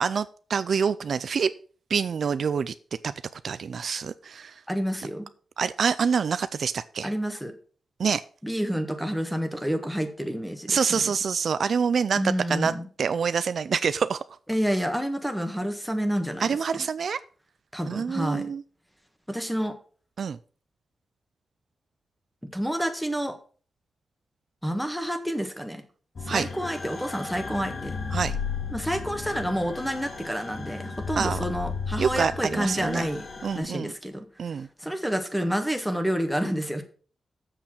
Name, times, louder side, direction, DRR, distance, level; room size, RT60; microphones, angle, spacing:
voice 1, 0.0-1.5 1.9-2.7 3.0-3.1 3.4-4.6 5.6-7.1 8.0-8.2 10.7-14.2 16.4-17.2 17.9-18.6 20.2-20.4 26.3-26.5 28.1-28.4 31.2-31.4 32.0-33.1 33.4-33.9 34.4-34.7, right 6 dB, 65° right, 14 dB, 0.4 m, -26 dB
voice 2, 4.7-5.3 7.0-7.5 8.4-11.1 12.1-12.9 14.5-16.5 16.8-16.9 17.7-18.5 19.3-19.7 22.5-23.3 24.6-25.8 26.2-28.0 28.7-33.3 33.5-36.8, equal, ahead, 6 dB, 1.6 m, -29 dB
sound 1, 26.2-33.6, left 5 dB, 55° left, 1.8 m, -34 dB
7.5 x 6.8 x 5.9 m, 0.41 s
cardioid pair, 95°, 0 cm